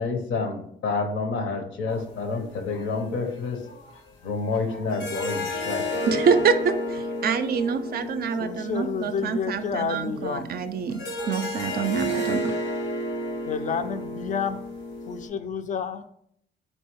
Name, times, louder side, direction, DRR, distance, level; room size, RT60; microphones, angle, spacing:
voice 1, 0.0-6.1, left 4 dB, 75° left, 4 dB, 0.8 m, -29 dB
sound 1, 1.9-2.5 3.4-3.5 4.9-15.3, left 1 dB, 90° left, 1.3 m, -32 dB
voice 2, 6.1-11.0 11.3-12.5, right 6 dB, 50° right, 10 dB, 0.4 m, -26 dB
voice 3, 8.4-10.5 13.5-14.6 15.1-16.0, left 6 dB, 40° left, 10 dB, 0.4 m, -29 dB
4.4 x 2.7 x 3.0 m, 0.70 s
cardioid pair, 90°, 20 cm